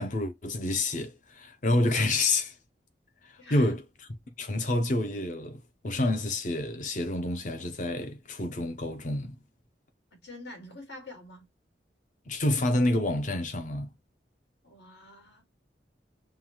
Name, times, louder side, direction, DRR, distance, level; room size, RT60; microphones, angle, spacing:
voice 1, 0.0-2.6 3.2-3.8 4.4-9.4 12.3-13.9, left 2 dB, 45° left, 0.7 m, -28 dB
voice 2, 3.4-3.7 10.1-11.5 14.6-15.4, left 2 dB, 75° left, 1.9 m, -46 dB
5.5 x 2.3 x 3.0 m
head